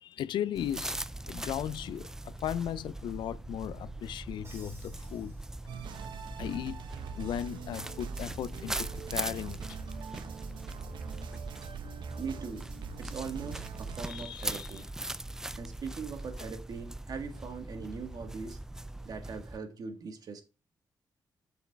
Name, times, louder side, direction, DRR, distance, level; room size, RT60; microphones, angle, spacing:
voice 1, 0.0-5.4 6.4-6.8 7.1-9.8 14.1-14.7, left 10 dB, 85° left, 0.4 m, -37 dB
sound 1, 0.5-19.6, right 1 dB, 5° right, 0.3 m, -41 dB
Crash cymbal, 4.4-6.2, right 3 dB, 30° right, 2.8 m, -57 dB
sound 2, 5.7-14.1, right 7 dB, 90° right, 0.8 m, -44 dB
voice 2, 12.2-12.7 13.0-14.9 15.6-18.6 19.0-20.4, right 5 dB, 55° right, 1.7 m, -40 dB
7.2 x 6.1 x 3.4 m
cardioid pair, 125°, 8 cm